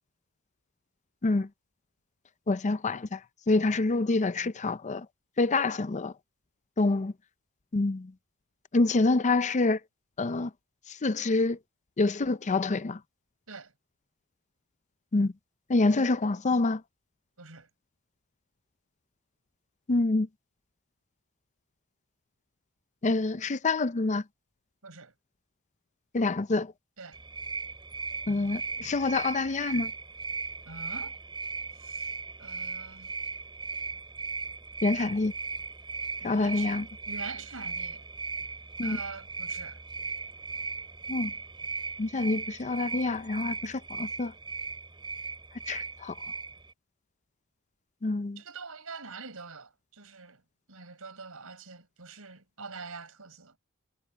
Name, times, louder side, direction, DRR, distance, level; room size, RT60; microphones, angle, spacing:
voice 1, 2.5-3.2 3.5-5.1 5.4-6.1 6.8-7.1 7.7-8.1 8.7-9.8 10.2-10.5 10.9-11.6 12.0-13.0 15.1-15.3 15.7-16.8 19.9-20.3 23.0-24.2 26.1-26.7 28.3-29.9 34.8-35.3 36.2-36.9 38.8-39.0 41.1-41.3 42.0-44.3 45.7-46.1 48.0-48.4, left 3 dB, 35° left, 0.6 m, -26 dB
voice 2, 17.4-17.7 24.8-25.1 27.0-27.2 30.7-31.2 31.7-32.1 32.4-33.1 36.2-38.0 38.8-39.8 48.4-50.4 50.7-53.5, right 4 dB, 70° right, 6.6 m, -45 dB
sound 1, 27.1-46.7, right 4 dB, 20° right, 3.3 m, -37 dB
head